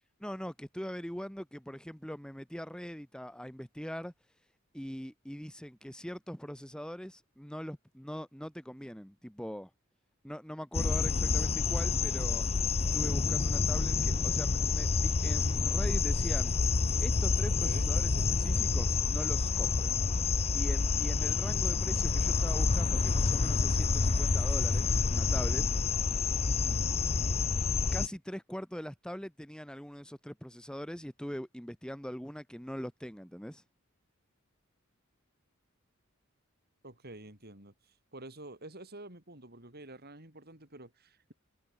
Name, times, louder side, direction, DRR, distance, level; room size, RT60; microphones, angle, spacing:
voice 1, 0.2-4.1 4.7-9.7 10.2-12.5 12.9-16.5 17.0-20.0 20.5-25.6 27.9-33.6, equal, 5° left, 1.9 m, -42 dB
sound 1, 10.7-28.1, left 4 dB, 30° left, 0.5 m, -28 dB
voice 2, 17.6-18.0 26.5-27.0 36.8-41.3, right 1 dB, 50° right, 5.5 m, -49 dB
head